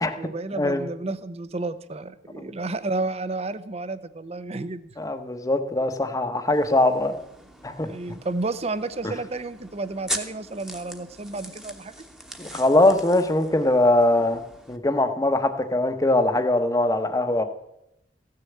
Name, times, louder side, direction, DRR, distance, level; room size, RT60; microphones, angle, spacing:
voice 1, 0.2-4.9 7.8-11.9, right 2 dB, 35° right, 14 dB, 0.7 m, -31 dB
voice 2, 5.0-7.2 7.6-7.9 9.0-9.1 12.4-14.4 14.7-17.4, left 2 dB, 20° left, 8 dB, 0.9 m, -21 dB
sound 1, 6.5-14.8, right 1 dB, 5° right, 1.1 m, -40 dB
15.5 x 6.7 x 8.5 m, 0.84 s
head